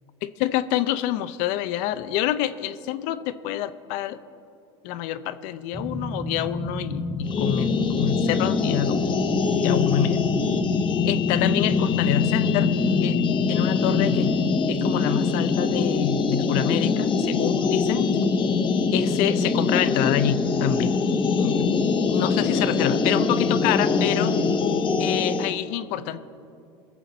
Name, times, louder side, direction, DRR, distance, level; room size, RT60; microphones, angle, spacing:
voice 1, 0.4-4.2 4.8-9.0 9.6-10.2 11.0-12.7 13.0-13.2 13.5-14.3 14.7-18.1 18.9-20.9 21.4-21.7 22.1-24.3 25.0-26.2, left 11 dB, 65° left, 12 dB, 0.6 m, -27 dB
sound 1, 5.7-25.5, right 1 dB, 5° right, 0.7 m, -31 dB
sound 2, 7.2-25.5, left 6 dB, 35° left, 1.0 m, -23 dB
21.5 x 7.2 x 4.1 m, 2.5 s
supercardioid pair, 100°, 15 cm